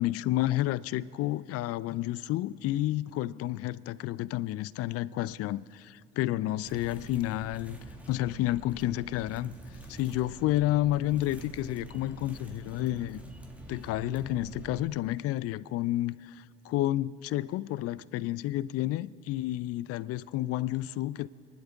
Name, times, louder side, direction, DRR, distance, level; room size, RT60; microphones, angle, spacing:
voice 1, 0.0-7.8 8.1-9.5 9.9-13.2 13.7-21.3, left 15 dB, 55° left, 0.5 m, -30 dB
sound 1, 6.7-14.8, right 2 dB, 5° right, 1.8 m, -45 dB
28.0 x 11.5 x 3.5 m
hypercardioid pair, 65°, 29 cm